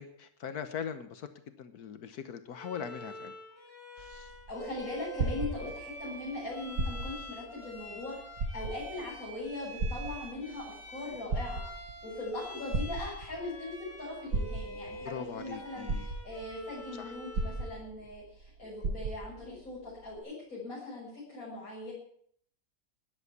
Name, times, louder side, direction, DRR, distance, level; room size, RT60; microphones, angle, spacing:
voice 1, 0.0-3.3 4.0-4.3 15.0-16.1 16.9-17.2, left 7 dB, 80° left, 10 dB, 1.5 m, -41 dB
Bowed string instrument, 2.6-17.8, right 1 dB, 10° left, 5.9 m, -47 dB
sound 1, 4.0-6.1 6.7-7.3 7.8-7.9 8.3-9.0 9.8-10.6 11.1-12.0 12.7-13.5 14.3-15.0 15.5-15.6 15.9-16.6 17.3-18.2 18.4-18.5 18.8-19.4 20.2-20.3, right 3 dB, 85° right, 2.4 m, -34 dB
voice 2, 4.5-8.2 8.5-11.8 12.0-21.9, left 2 dB, 65° left, -8 dB, 7.0 m, -40 dB
13.5 x 11.0 x 8.3 m, 0.65 s
omnidirectional pair, 1.6 m